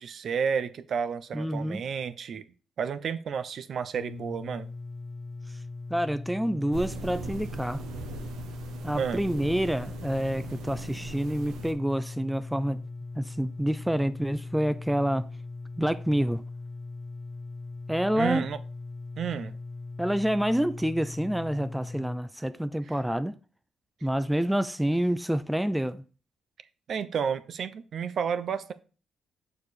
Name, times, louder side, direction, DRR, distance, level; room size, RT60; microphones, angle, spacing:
voice 1, 0.0-2.4 2.8-4.7 8.9-9.2 18.2-18.6 19.2-19.5 22.9-23.0 26.9-28.7, right 7 dB, 60° right, 0.6 m, -31 dB
voice 2, 1.3-1.8 5.9-7.8 8.8-12.8 13.2-15.3 15.8-16.4 17.9-18.4 20.0-23.3 24.0-26.0, equal, 5° right, 0.4 m, -28 dB
sound 1, 3.9-22.2, left 3 dB, 45° left, 1.1 m, -40 dB
sound 2, 6.7-11.7, right 4 dB, 85° right, 1.1 m, -40 dB
6.6 x 4.9 x 4.2 m
cardioid pair, 90°, 0 cm